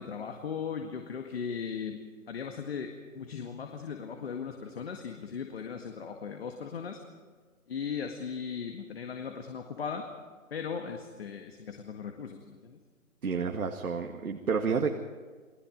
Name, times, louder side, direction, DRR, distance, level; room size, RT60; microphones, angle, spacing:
voice 1, 0.0-2.0 2.3-7.0 7.7-10.1 10.5-12.8, left 6 dB, 45° left, 4 dB, 1.9 m, -38 dB
voice 2, 13.2-14.9, right 5 dB, 90° right, 3 dB, 2.2 m, -30 dB
29.5 x 20.0 x 5.3 m, 1.4 s
hypercardioid pair, 165°, 42 cm